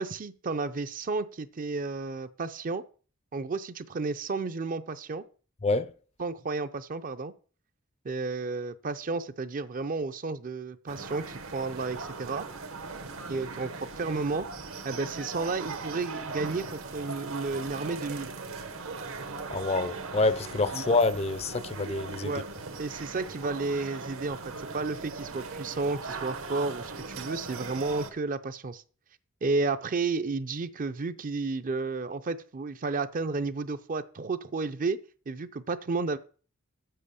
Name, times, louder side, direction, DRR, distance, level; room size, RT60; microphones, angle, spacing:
voice 1, 0.0-2.8 3.3-5.2 6.2-7.3 8.0-12.5 13.3-14.5 14.8-18.3 20.7-20.8 22.2-22.5 22.8-28.8 29.4-36.2, right 3 dB, 40° right, 0.5 m, -32 dB
voice 2, 5.6-5.9 19.5-22.3, left 3 dB, 30° left, 0.5 m, -27 dB
sound 1, 10.9-28.1, right 3 dB, 75° right, 1.3 m, -39 dB
7.7 x 6.6 x 6.9 m
head